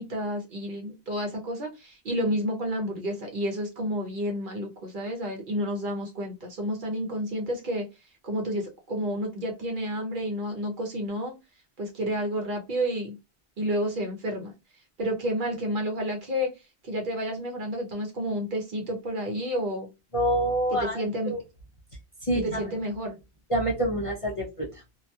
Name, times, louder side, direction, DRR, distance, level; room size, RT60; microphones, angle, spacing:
voice 1, 0.0-7.9 8.2-11.3 11.8-13.2 13.6-14.5 15.0-16.5 16.8-19.9 20.8-21.3 22.3-23.2, equal, 55° right, 1 dB, 0.8 m, -30 dB
voice 2, 20.1-21.0 21.3-21.4 22.2-22.6 23.5-24.8, right 1 dB, 40° left, -3 dB, 0.5 m, -26 dB
2.7 x 2.3 x 2.2 m, 0.25 s
omnidirectional pair, 1.1 m